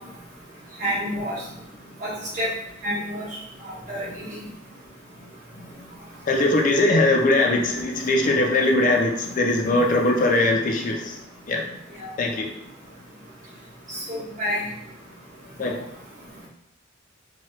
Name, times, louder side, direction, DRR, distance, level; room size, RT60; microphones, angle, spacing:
voice 1, 0.8-1.4 2.0-2.5 2.8-3.3 3.9-4.3 12.0-12.1 13.9-14.6, equal, 40° right, -8 dB, 1.3 m, -28 dB
voice 2, 6.3-11.2 11.5-11.6 12.2-12.5 15.6-15.8, left 2 dB, 40° left, 1 dB, 0.4 m, -21 dB
3.0 x 2.3 x 3.1 m, 0.82 s
head